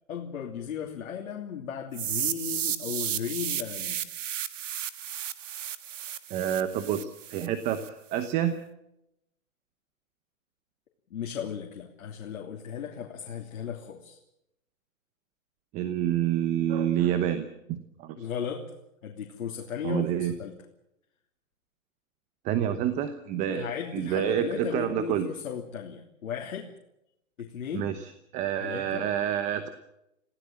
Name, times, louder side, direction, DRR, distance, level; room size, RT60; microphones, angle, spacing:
voice 1, 0.1-4.0 11.1-14.2 18.2-18.7 19.0-20.6 23.5-26.7 27.4-27.9 28.6-29.1, left 8 dB, 65° left, 1 dB, 3.1 m, -36 dB
sound 1, 1.9-7.9, right 10 dB, 60° right, 1.7 m, -33 dB
voice 2, 6.3-8.6 15.7-18.3 19.8-20.3 22.4-25.3 27.7-29.7, right 10 dB, 15° right, 10 dB, 0.9 m, -28 dB
26.0 x 16.5 x 7.7 m, 0.84 s
hypercardioid pair, 150°, 42 cm